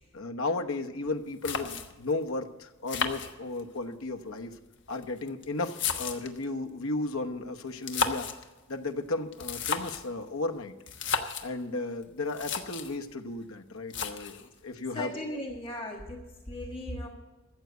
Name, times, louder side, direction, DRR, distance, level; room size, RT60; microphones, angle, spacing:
voice 1, 0.1-4.6 4.9-8.3 8.7-10.7 11.4-15.1, left 2 dB, 85° left, 5 dB, 1.1 m, -34 dB
sound 1, 1.1-1.2 1.4-2.1 2.9-3.8 4.7-6.4 7.7-8.5 9.3-10.1 10.9-11.5 12.0-12.1 12.3-13.0 13.9-14.5, left 5 dB, 55° left, 1.2 m, -33 dB
voice 2, 14.9-17.1, left 1 dB, 25° left, 1 dB, 1.5 m, -37 dB
14.5 x 7.9 x 8.2 m, 1.1 s
head